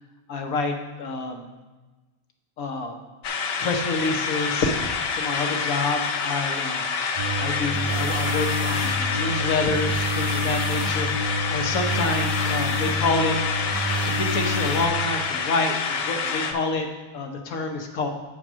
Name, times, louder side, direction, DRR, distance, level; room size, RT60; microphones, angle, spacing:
voice 1, 0.3-1.4 2.6-3.0 3.6-4.7 5.2-6.9 7.4-13.4 14.1-16.9 17.1-18.1, left 3 dB, 85° left, 3 dB, 1.4 m, -27 dB
sound 1, 3.2-16.5, left 5 dB, 55° left, 0.7 m, -27 dB
sound 2, 7.2-14.9, equal, 25° right, 0.5 m, -28 dB
7.7 x 4.5 x 6.1 m, 1.2 s
omnidirectional pair, 1.4 m